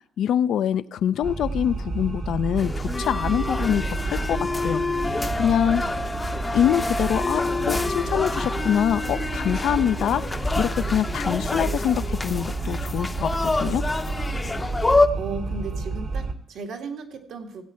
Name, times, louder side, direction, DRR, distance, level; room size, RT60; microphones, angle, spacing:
voice 1, 0.2-6.1 6.5-10.3 10.6-13.8, left 9 dB, 75° left, 14 dB, 0.4 m, -25 dB
sound 1, 1.2-16.3, right 3 dB, 55° right, 1.3 m, -31 dB
sound 2, 2.6-15.1, left 2 dB, 20° left, 0.7 m, -27 dB
voice 2, 15.1-17.6, right 4 dB, 80° right, 1 dB, 2.1 m, -35 dB
16.0 x 8.6 x 4.4 m, 0.67 s
cardioid pair, 90°, 0 cm